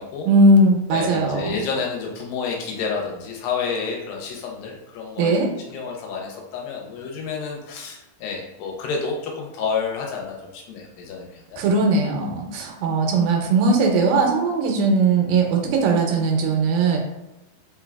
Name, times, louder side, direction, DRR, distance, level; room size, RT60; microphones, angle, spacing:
voice 1, 0.2-1.6 5.2-5.5 11.6-17.0, right 3 dB, 90° right, 1 dB, 2.4 m, -19 dB
voice 2, 0.9-5.3 5.7-11.6, left 5 dB, 85° left, 0 dB, 2.3 m, -29 dB
5.4 x 2.2 x 2.2 m, 0.94 s
omnidirectional pair, 4.0 m